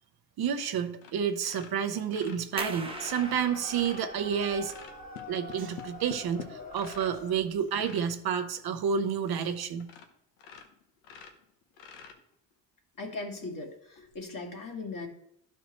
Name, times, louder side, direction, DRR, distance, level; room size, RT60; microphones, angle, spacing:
voice 1, 0.4-4.7 5.3-9.9, right 7 dB, 50° right, 7 dB, 0.8 m, -30 dB
sound 1, 1.0-1.2 1.4-4.1 4.6-7.2 7.6-8.1 8.8-8.9 9.2-9.3 9.8-10.1 10.4-12.5 14.0-14.2, left 7 dB, 90° left, 1.1 m, -47 dB
sound 2, 2.6-7.9, right 3 dB, 10° right, 0.9 m, -44 dB
sound 3, 2.7-7.6, left 2 dB, 15° left, 1.4 m, -45 dB
voice 2, 13.0-15.1, left 3 dB, 45° left, 1 dB, 2.1 m, -38 dB
12.0 x 4.4 x 3.1 m, 0.73 s
supercardioid pair, 75°, 48 cm